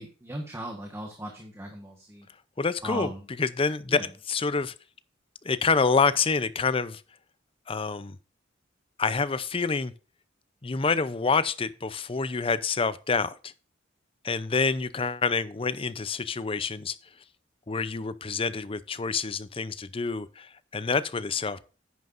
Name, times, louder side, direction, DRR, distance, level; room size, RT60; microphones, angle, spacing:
voice 1, 0.0-2.3 2.8-3.2 3.9-4.1, right 1 dB, 15° right, 1.4 m, -37 dB
voice 2, 2.6-3.1 3.4-4.0 4.3-4.7 5.4-7.0 7.7-8.2 9.0-9.9 10.6-13.5 14.2-17.0 17.7-21.7, left 4 dB, 30° left, 0.6 m, -27 dB
10.5 x 9.4 x 2.6 m
head